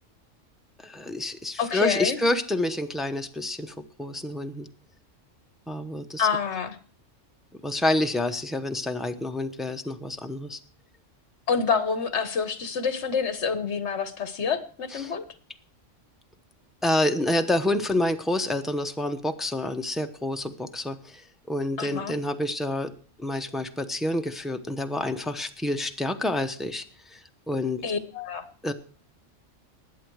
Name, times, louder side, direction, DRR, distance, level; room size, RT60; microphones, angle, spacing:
voice 1, 0.8-4.7 5.7-6.3 7.6-10.6 14.9-15.1 16.8-21.2 21.5-22.9 23.2-26.8 27.1-27.2 27.5-27.8 28.6-28.7, left 1 dB, ahead, 6 dB, 0.7 m, -28 dB
voice 2, 1.6-2.2 6.2-6.8 11.5-15.2 21.8-22.2 27.8-28.4, left 6 dB, 60° left, 12 dB, 1.5 m, -27 dB
20.5 x 7.9 x 4.7 m, 0.41 s
omnidirectional pair, 1.3 m